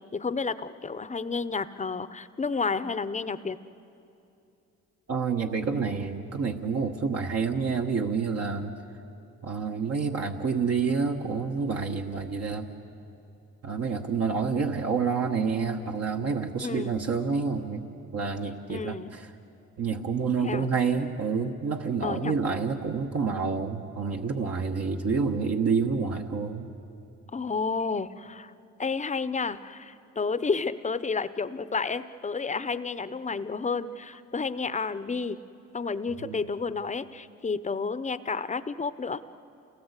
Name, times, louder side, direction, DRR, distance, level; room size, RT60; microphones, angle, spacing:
voice 1, 0.0-3.6 16.6-16.9 18.7-19.1 20.4-20.7 22.0-22.3 27.3-28.5 28.8-35.4 35.7-39.2, left 4 dB, 25° left, 14 dB, 0.7 m, -31 dB
voice 2, 5.1-8.7 9.4-12.7 13.6-19.3 19.8-26.7 36.2-36.4, right 5 dB, 55° right, 2 dB, 1.3 m, -28 dB
28.5 x 18.5 x 8.2 m, 2.8 s
cardioid pair, 90°, 30 cm